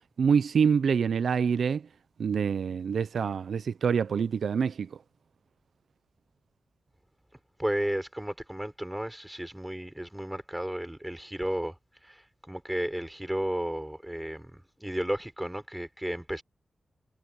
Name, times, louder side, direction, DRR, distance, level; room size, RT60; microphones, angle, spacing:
voice 1, 0.2-1.9 2.2-5.0, right 6 dB, 85° right, 0.5 m, -26 dB
voice 2, 7.6-11.7 12.0-16.4, right 1 dB, 5° right, 4.8 m, -33 dB
wide cardioid pair, 150°, 0 cm